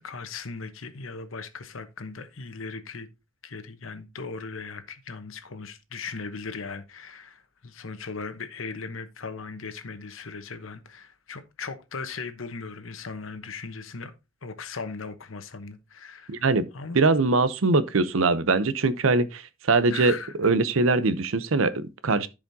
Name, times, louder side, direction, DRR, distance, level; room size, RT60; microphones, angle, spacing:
voice 1, 0.0-3.1 3.4-14.1 14.4-16.4 16.7-17.0 19.9-20.3, left 4 dB, 80° left, 1.0 m, -38 dB
voice 2, 16.3-16.7 16.9-22.3, right 3 dB, 80° right, 0.7 m, -22 dB
14.5 x 4.9 x 2.7 m
head